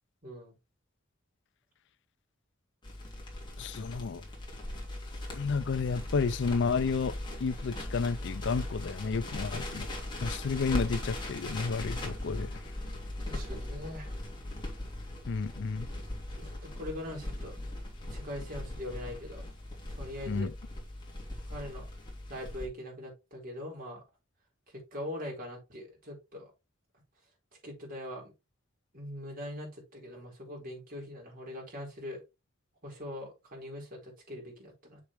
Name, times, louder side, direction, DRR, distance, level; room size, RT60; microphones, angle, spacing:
voice 1, 0.2-0.5 13.2-14.1 16.4-17.6 18.1-19.4 19.9-20.5 21.5-21.9 22.3-24.0 24.9-26.5 27.6-28.3 28.9-32.2 32.8-35.0, left 1 dB, 45° right, 4.2 m, -42 dB
Crackle, 2.8-22.7, left 1 dB, 25° left, 3.0 m, -39 dB
voice 2, 3.6-4.2 5.3-9.9 10.2-12.5 15.3-15.9 20.3-20.5, left 4 dB, 60° left, 0.4 m, -31 dB
7.2 x 6.7 x 3.1 m
head